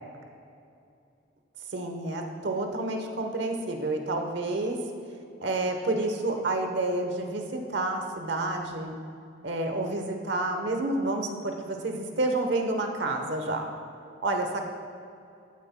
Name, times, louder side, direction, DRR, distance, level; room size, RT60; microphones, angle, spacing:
voice 1, 1.7-4.8 5.4-8.9 9.4-13.7 14.2-14.6, right 2 dB, 70° right, 3 dB, 1.0 m, -29 dB
14.0 x 9.4 x 2.2 m, 2.5 s
head